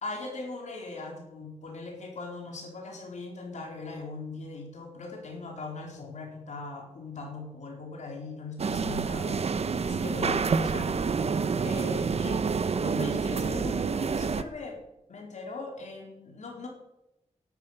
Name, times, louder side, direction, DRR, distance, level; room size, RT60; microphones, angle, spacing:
voice 1, 0.0-9.4 9.8-11.0 11.6-12.5 12.7-14.8 15.1-16.7, left 3 dB, 85° left, 1 dB, 4.3 m, -40 dB
sound 1, 8.6-14.4, right 5 dB, 60° right, 0.9 m, -28 dB
13.0 x 11.5 x 8.1 m, 0.91 s
wide cardioid pair, 105°, 12 cm